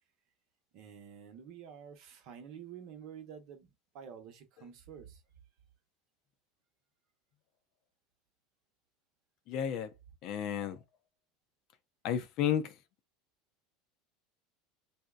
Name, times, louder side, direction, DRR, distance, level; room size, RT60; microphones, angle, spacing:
voice 1, 0.7-5.2, right 8 dB, 60° right, 0.8 m, -49 dB
voice 2, 9.5-9.9 10.2-10.8 12.0-12.7, left 9 dB, 60° left, 0.5 m, -32 dB
2.8 x 2.0 x 2.3 m
hypercardioid pair, 95°, 0 cm